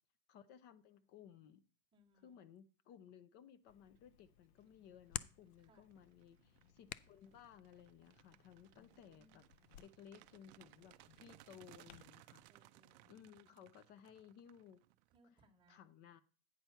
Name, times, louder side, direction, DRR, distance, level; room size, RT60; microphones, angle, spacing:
voice 1, 0.3-1.6 2.2-9.4 9.8-12.5 13.1-14.8 15.7-16.2, left 8 dB, 35° left, 0.6 m, -60 dB
voice 2, 1.9-2.4 5.6-5.9 8.8-9.5 12.5-13.1 15.1-15.9, right 1 dB, 15° right, 1.2 m, -71 dB
Hands, 3.7-12.1, left 13 dB, 80° left, 0.5 m, -54 dB
sound 1, 4.3-4.6 5.1-15.2, right 17 dB, 45° right, 0.4 m, -65 dB
9.2 x 4.5 x 5.6 m
supercardioid pair, 160°, 32 cm